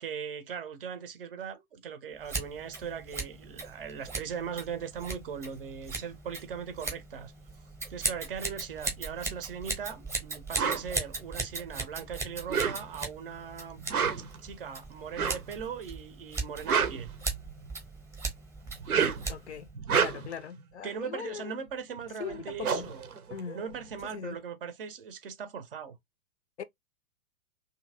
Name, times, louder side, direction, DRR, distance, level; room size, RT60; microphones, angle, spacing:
voice 1, 0.0-7.3 7.9-13.8 14.4-17.1 20.8-23.0 23.5-26.0, right 7 dB, 40° right, 0.6 m, -39 dB
Scissors, 2.2-19.7, right 4 dB, 5° right, 0.8 m, -38 dB
sound 1, 10.6-10.8 12.4-13.1 13.8-14.4 15.1-15.5 16.4-17.7 18.7-19.3 19.7-20.4 22.0-22.1 22.3-24.0, right 6 dB, 75° right, 0.7 m, -29 dB
voice 2, 19.3-19.7 19.9-21.5 22.2-22.9 23.3-23.6 24.0-24.4 26.6-26.7, left 7 dB, 55° left, 0.4 m, -40 dB
2.7 x 2.6 x 2.5 m
figure-of-eight pair, 110°, 44 cm